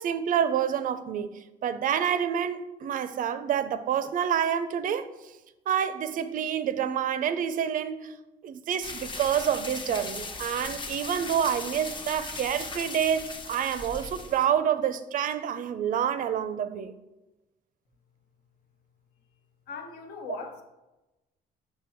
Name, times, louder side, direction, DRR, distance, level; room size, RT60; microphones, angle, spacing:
voice 1, 0.0-1.3 1.6-5.1 5.7-8.1 8.4-16.9, right 9 dB, 55° right, 0.5 m, -28 dB
sound 1, 8.8-14.5, left 3 dB, 30° left, 0.8 m, -38 dB
voice 2, 19.7-20.6, left 5 dB, 65° left, 1.0 m, -39 dB
6.1 x 3.3 x 5.7 m
cardioid pair, 110°, 17 cm